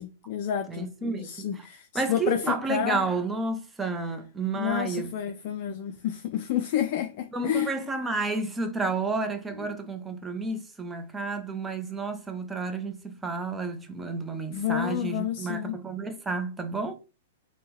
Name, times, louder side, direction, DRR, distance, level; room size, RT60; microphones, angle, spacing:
voice 1, 0.0-3.1 4.5-7.8 9.5-9.8 14.5-15.8, left 10 dB, 50° left, 0.3 m, -30 dB
voice 2, 0.7-1.5 1.9-5.1 5.7-5.8 7.3-16.9, right 3 dB, 10° right, 0.5 m, -31 dB
3.4 x 2.0 x 3.0 m
hypercardioid pair, 115°, 0 cm